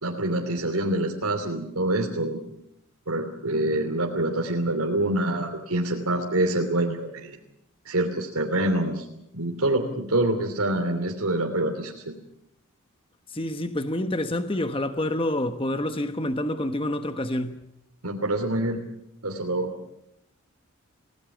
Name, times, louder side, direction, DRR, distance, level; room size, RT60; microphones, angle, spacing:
voice 1, 0.0-2.4 3.1-7.4 7.8-9.0 9.3-12.1 18.0-18.8 19.2-19.7, right 1 dB, 85° right, 3.0 m, -26 dB
voice 2, 13.3-17.6, left 1 dB, 25° left, 1.1 m, -27 dB
29.0 x 18.0 x 7.3 m
head